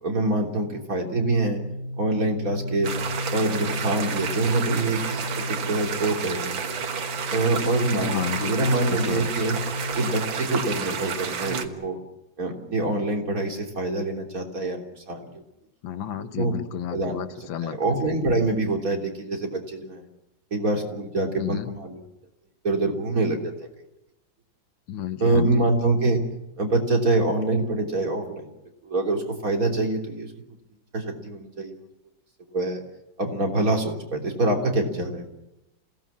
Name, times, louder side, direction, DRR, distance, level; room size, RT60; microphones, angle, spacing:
voice 1, 0.0-1.6 2.0-2.9 3.3-6.7 7.3-9.6 9.9-12.0 12.4-15.3 16.2-16.5 16.9-17.2 17.6-20.0 20.5-22.0 22.6-23.7 25.2-26.2 26.6-28.5 28.8-30.3 30.9-31.8 32.5-32.8 33.2-35.2, right 2 dB, 45° right, 2 dB, 3.8 m, -25 dB
sound 1, 1.1-10.9, left 1 dB, 55° left, 5.2 m, -34 dB
sound 2, 2.8-11.6, right 6 dB, 90° right, 2.3 m, -31 dB
voice 2, 8.0-9.3 15.8-18.0 21.4-21.7 24.9-25.7, left 10 dB, 85° left, 11 dB, 1.9 m, -32 dB
28.0 x 17.5 x 7.5 m, 0.91 s
omnidirectional pair, 2.1 m